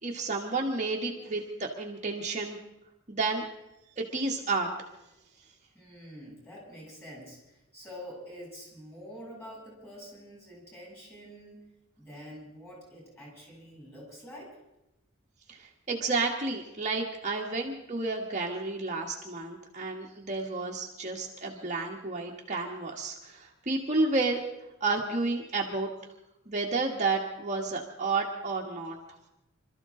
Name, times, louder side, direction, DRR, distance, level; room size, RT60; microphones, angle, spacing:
voice 1, 0.0-2.6 3.1-3.4 4.0-4.9 15.5-24.4 24.8-25.9 26.5-29.0, right 3 dB, 35° right, -1 dB, 1.4 m, -31 dB
voice 2, 5.7-11.6 12.0-14.6, equal, 10° left, -3 dB, 7.5 m, -46 dB
26.0 x 13.5 x 3.8 m, 0.91 s
head